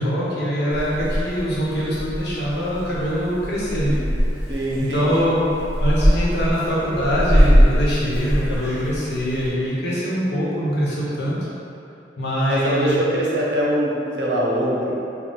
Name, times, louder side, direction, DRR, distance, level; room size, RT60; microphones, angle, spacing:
voice 1, 0.0-3.9 4.4-5.4 5.8-11.4 12.2-13.0, equal, 65° left, -7 dB, 1.0 m, -23 dB
Purr / Meow, 0.7-9.5, equal, 15° left, 0.9 m, -22 dB
voice 2, 4.5-5.1 12.5-15.0, equal, 75° right, -4 dB, 0.7 m, -23 dB
3.9 x 2.2 x 3.8 m, 2.8 s
head